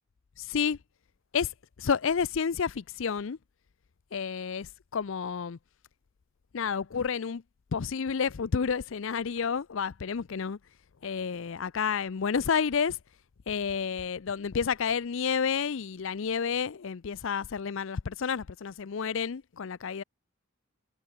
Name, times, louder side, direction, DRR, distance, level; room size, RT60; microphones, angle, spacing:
voice 1, 0.4-0.8 1.3-1.5 1.8-3.4 4.1-5.6 6.5-7.4 7.7-10.6 11.0-13.0 13.5-20.0, left 6 dB, 60° left, 0.5 m, -30 dB
head